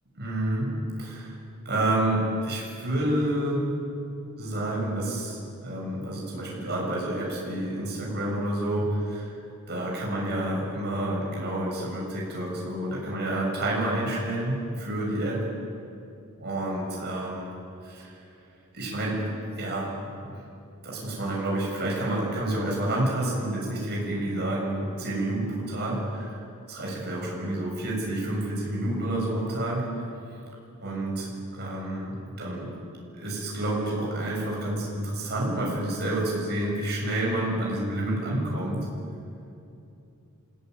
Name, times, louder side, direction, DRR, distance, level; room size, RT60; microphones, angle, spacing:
voice 1, 0.2-0.7 1.0-1.3 1.7-3.7 4.4-9.3 9.7-15.4 16.4-17.5 17.8-18.2 18.7-19.2 19.6-19.9 20.2-20.4 20.8-26.4 26.7-29.8 30.8-32.1 32.4-32.7 33.1-38.8, right 1 dB, 50° right, -3 dB, 7.1 m, -29 dB
27.5 x 17.0 x 9.7 m, 2.7 s
head